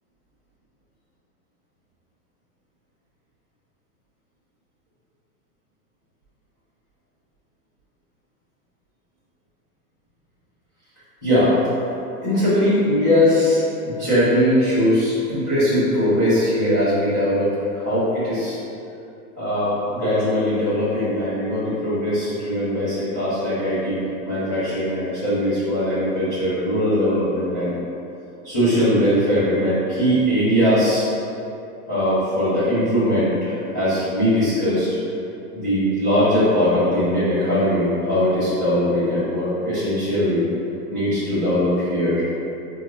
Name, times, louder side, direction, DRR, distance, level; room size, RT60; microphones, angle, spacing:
voice 1, 11.2-11.6 12.2-18.6 19.3-27.7 28.4-31.1 31.9-34.9 35.5-40.4 40.9-42.2, equal, 15° left, -19 dB, 0.4 m, -20 dB
4.7 x 2.3 x 2.8 m, 2.7 s
hypercardioid pair, 175°, 47 cm